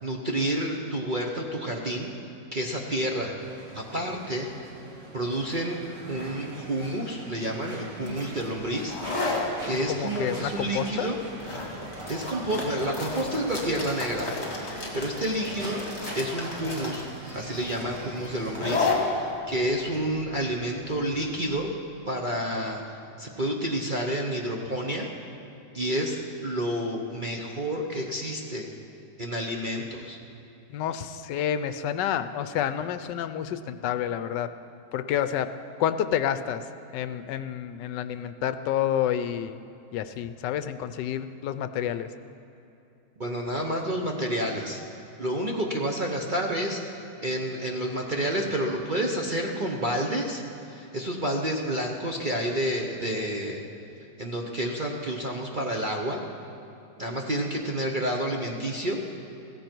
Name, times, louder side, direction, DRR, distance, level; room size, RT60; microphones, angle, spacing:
voice 1, 0.0-2.1 2.5-3.4 3.7-4.5 5.1-5.8 6.1-9.0 9.6-11.2 12.1-14.3 14.9-15.9 16.1-21.7 22.1-25.1 25.7-28.7 29.2-30.2 43.2-44.8 45.2-46.8 47.2-53.6 54.2-56.2 57.0-59.0, right 1 dB, 35° right, 0 dB, 0.8 m, -29 dB
sound 1, 3.4-18.9, right 2 dB, 70° right, 2.5 m, -42 dB
sound 2, 8.0-21.4, left 3 dB, 35° left, 2.6 m, -33 dB
voice 2, 9.9-11.1 30.7-34.5 34.9-35.5 35.8-36.6 36.9-39.6 39.9-42.1, left 10 dB, 75° left, 11 dB, 1.2 m, -29 dB
16.0 x 15.0 x 4.5 m, 2.9 s
omnidirectional pair, 2.0 m